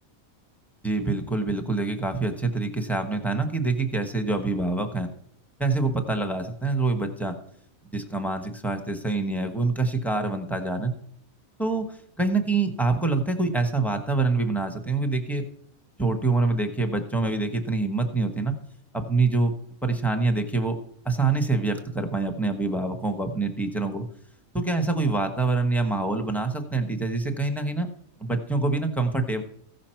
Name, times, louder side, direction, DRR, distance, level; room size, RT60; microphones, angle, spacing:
voice 1, 0.8-5.1 5.6-7.3 7.9-10.9 11.6-11.8 12.2-15.4 16.0-18.5 18.9-19.5 19.8-20.8 21.0-24.1 24.5-27.9 28.2-29.4, right 3 dB, ahead, 5 dB, 1.1 m, -25 dB
15.5 x 6.4 x 4.5 m, 0.67 s
omnidirectional pair, 1.4 m